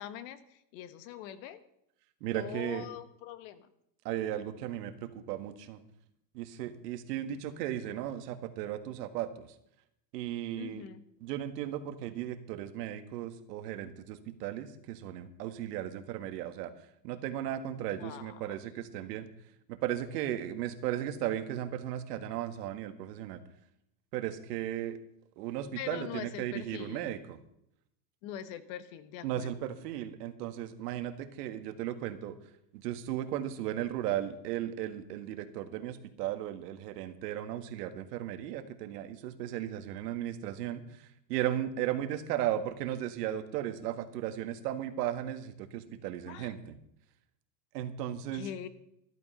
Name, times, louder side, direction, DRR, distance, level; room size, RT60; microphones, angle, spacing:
voice 1, 0.0-1.6 2.3-3.7 10.6-11.0 17.9-18.6 25.8-27.1 28.2-29.5 46.2-46.5 48.3-48.7, left 11 dB, 50° left, 13 dB, 1.3 m, -43 dB
voice 2, 2.2-2.9 4.0-5.8 6.3-9.5 10.1-10.8 11.2-16.7 17.0-19.3 19.7-23.4 24.1-25.0 25.4-27.4 29.2-32.4 32.7-46.8 47.7-48.5, right 11 dB, 70° right, 8 dB, 1.8 m, -36 dB
14.0 x 12.5 x 5.6 m, 0.76 s
supercardioid pair, 155°, 50 cm